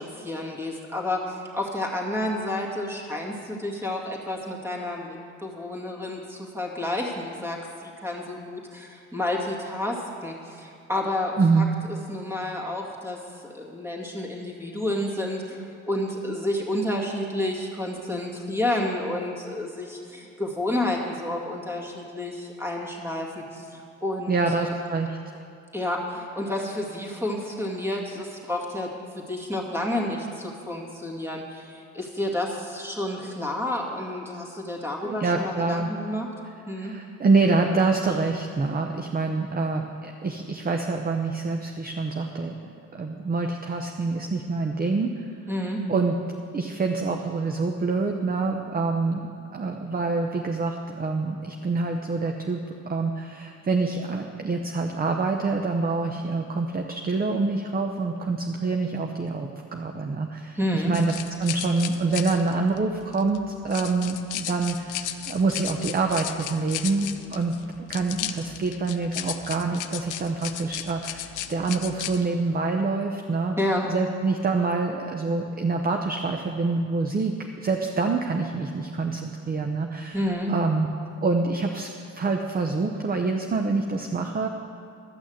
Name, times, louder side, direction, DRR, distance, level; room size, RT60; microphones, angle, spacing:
voice 1, 0.0-5.1 5.4-15.6 15.9-24.7 25.7-36.3 36.7-36.9 45.5-45.8 60.5-60.9 73.6-73.9 80.1-80.5, left 1 dB, 10° right, -1 dB, 2.1 m, -30 dB
voice 2, 11.4-11.7 24.3-25.2 35.0-35.9 36.7-42.5 42.9-45.3 45.9-46.2 46.5-49.2 49.5-52.6 52.9-61.1 61.4-67.5 67.9-73.6 73.9-80.9 81.2-81.9 82.2-84.5, right 3 dB, 30° right, 3 dB, 0.8 m, -26 dB
sound 1, 60.9-72.2, left 12 dB, 85° left, 0.6 m, -36 dB
12.5 x 6.2 x 7.9 m, 2.5 s
cardioid pair, 90°, 30 cm